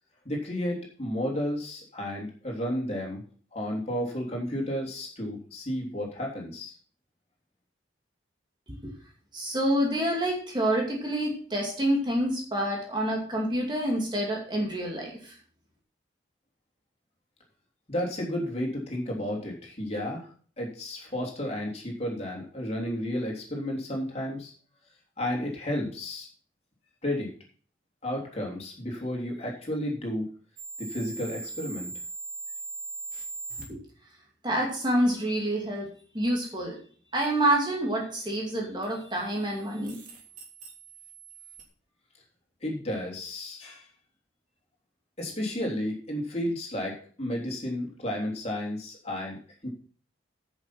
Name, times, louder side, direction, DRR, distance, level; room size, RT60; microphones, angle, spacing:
voice 1, 0.2-3.2 3.5-6.7 17.9-20.3 20.6-24.5 25.2-26.3 27.0-27.3 28.0-30.3 30.8-31.9 42.6-43.9 45.2-49.7, left 1 dB, 35° left, -2 dB, 3.3 m, -32 dB
voice 2, 9.3-15.3 33.7-33.8 34.4-35.9 36.1-36.8 37.1-40.0, right 1 dB, 25° right, -1 dB, 2.4 m, -27 dB
sound 1, 30.6-33.6 38.8-41.7, right 3 dB, 45° right, 3.2 m, -41 dB
10.5 x 6.4 x 5.9 m, 0.44 s
head